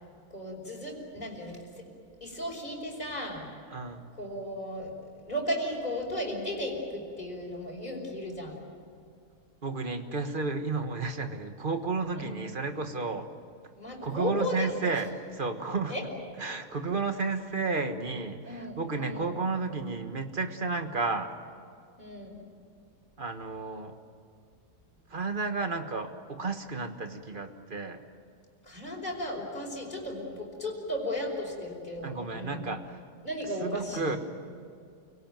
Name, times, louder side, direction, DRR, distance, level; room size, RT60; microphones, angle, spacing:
voice 1, 0.3-1.6 2.2-3.5 4.2-4.9 5.3-8.6 12.1-12.4 13.8-14.9 15.9-16.0 18.4-19.3 22.0-22.4 28.6-32.6 33.2-34.2, equal, 25° left, -1 dB, 5.4 m, -35 dB
voice 2, 3.7-4.0 9.6-13.3 14.0-16.0 16.4-21.3 23.2-24.0 25.1-28.0 32.0-33.0 33.6-34.2, right 4 dB, 35° right, 7 dB, 1.5 m, -32 dB
29.0 x 18.0 x 9.3 m, 2.3 s
omnidirectional pair, 1.7 m